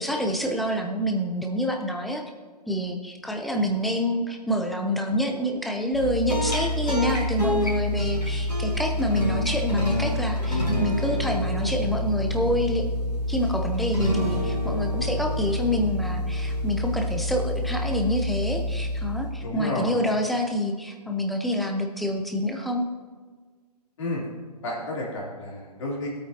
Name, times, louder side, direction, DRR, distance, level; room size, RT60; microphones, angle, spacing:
voice 1, 0.0-2.2 2.7-12.8 13.3-22.8, equal, ahead, 2 dB, 0.6 m, -27 dB
sound 1, 5.9-19.5, left 1 dB, 80° left, 3.1 m, -27 dB
voice 2, 19.4-20.0 24.0-24.2 24.6-26.1, left 1 dB, 50° left, -3 dB, 3.5 m, -31 dB
18.0 x 8.6 x 2.9 m, 1.5 s
figure-of-eight pair, 130°, 21 cm